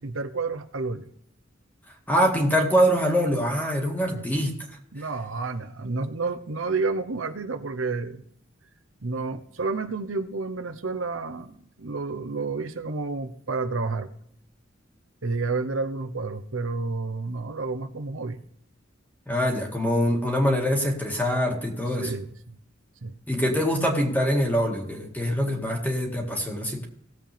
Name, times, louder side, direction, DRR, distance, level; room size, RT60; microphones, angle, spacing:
voice 1, 0.0-1.1 4.1-4.2 4.9-8.2 9.0-14.1 15.2-18.4 22.0-22.6 23.0-23.2, right 3 dB, 90° right, 1.0 m, -30 dB
voice 2, 2.1-4.6 19.3-22.1 23.3-26.9, equal, 10° left, 2.0 m, -24 dB
19.0 x 7.7 x 3.4 m
head